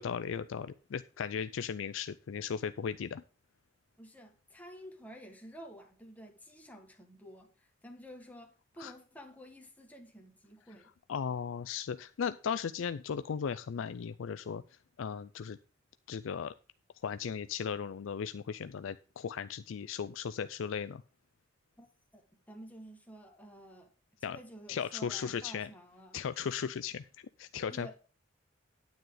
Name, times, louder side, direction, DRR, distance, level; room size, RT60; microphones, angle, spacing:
voice 1, 0.0-3.2 8.8-8.9 11.1-14.6 15.0-15.6 16.1-16.5 17.0-21.0 24.2-24.4 24.7-25.7 26.1-27.0 27.4-27.9, left 7 dB, 85° left, 0.4 m, -36 dB
voice 2, 4.0-10.9 21.8-21.9 22.1-23.9 24.2-26.2 27.7-27.9, equal, 10° left, 1.7 m, -51 dB
9.3 x 9.2 x 3.9 m
head